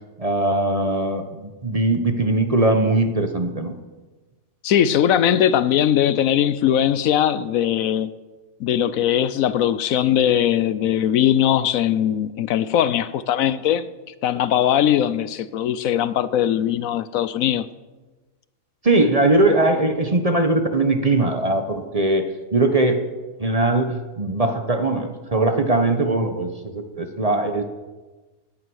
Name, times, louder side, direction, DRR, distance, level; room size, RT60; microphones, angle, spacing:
voice 1, 0.2-3.7 18.8-22.2 22.5-23.0 23.4-27.6, right 2 dB, 30° right, 1.0 m, -20 dB
voice 2, 4.6-8.1 8.6-13.9 14.2-17.7, left 10 dB, 75° left, 1.0 m, -20 dB
17.0 x 9.6 x 6.3 m
omnidirectional pair, 1.5 m